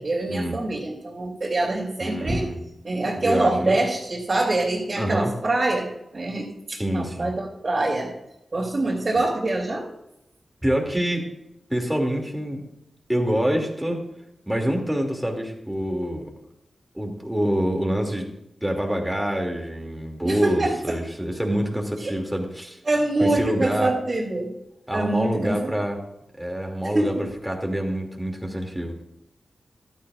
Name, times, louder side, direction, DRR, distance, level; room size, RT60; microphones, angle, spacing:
voice 1, 0.0-2.5 2.8-5.9 6.1-8.1 8.5-9.8 20.2-20.9 22.0-22.1 22.9-24.5 24.9-25.7 26.8-27.1, right 2 dB, 45° right, -5 dB, 3.0 m, -25 dB
voice 2, 2.0-2.6 3.2-3.8 5.0-5.3 6.8-7.3 10.6-11.3 11.7-12.6 13.1-14.0 14.5-16.3 16.9-18.3 18.6-22.8 23.2-23.9 24.9-26.0 26.4-27.1 27.4-29.0, equal, 5° right, 2 dB, 2.6 m, -26 dB
14.5 x 12.0 x 2.5 m, 0.83 s
cardioid pair, 70°, 0 cm